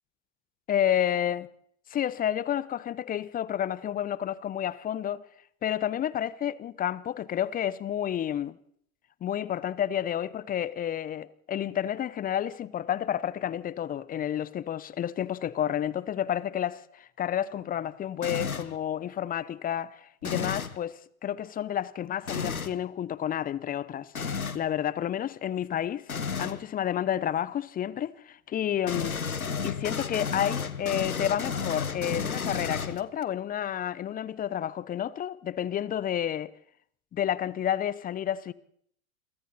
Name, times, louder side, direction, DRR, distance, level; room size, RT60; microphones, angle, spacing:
voice 1, 0.7-1.5 1.9-5.2 5.6-8.6 9.2-29.2 29.6-36.5 37.1-38.5, left 10 dB, 20° left, 0.8 m, -30 dB
sound 1, 18.2-18.8 20.2-20.8 22.3-22.7 24.2-24.7 26.1-26.6 28.9-33.2, left 5 dB, 90° left, 1.4 m, -32 dB
29.0 x 23.0 x 4.3 m
figure-of-eight pair, 95°, 42 cm